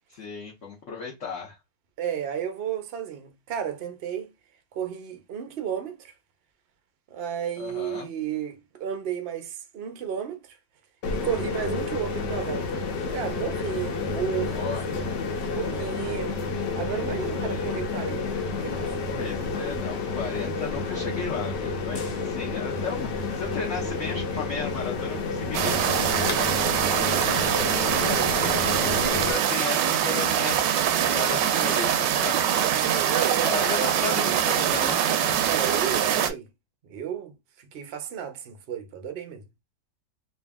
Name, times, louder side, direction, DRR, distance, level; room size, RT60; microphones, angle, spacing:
voice 1, 0.1-1.6 7.6-8.1 14.4-15.2 17.4-17.7 19.1-25.8 27.9-28.3 28.8-32.4 33.4-35.0, left 5 dB, 50° left, 1.1 m, -35 dB
voice 2, 2.0-4.3 4.7-6.1 7.1-10.4 11.1-12.8 13.1-14.6 14.9-19.1 26.1-26.9 32.8-34.7 35.4-36.5 36.9-39.4, right 8 dB, 55° right, 0.7 m, -33 dB
sound 1, 11.0-29.3, left 4 dB, 75° left, 1.4 m, -30 dB
sound 2, 25.5-36.3, right 9 dB, 80° right, 1.3 m, -24 dB
3.3 x 2.7 x 3.4 m
omnidirectional pair, 1.9 m